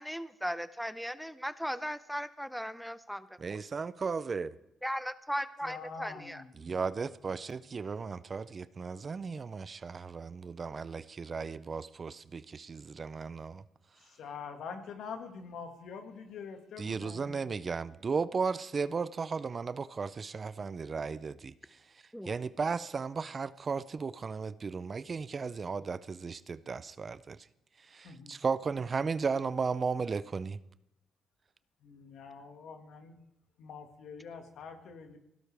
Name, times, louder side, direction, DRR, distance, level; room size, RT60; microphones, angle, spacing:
voice 1, 0.0-3.6 4.8-6.4 22.1-22.3, equal, ahead, 0.6 m, -37 dB
voice 2, 3.4-4.6 6.6-13.6 16.8-21.5 22.3-27.4 27.9-30.6, right 5 dB, 40° right, 0.5 m, -35 dB
voice 3, 5.6-6.5 14.1-17.4 28.0-28.3 31.8-33.2 33.6-35.2, left 5 dB, 75° left, 1.9 m, -45 dB
20.5 x 16.5 x 3.4 m
cardioid pair, 85°, 0 cm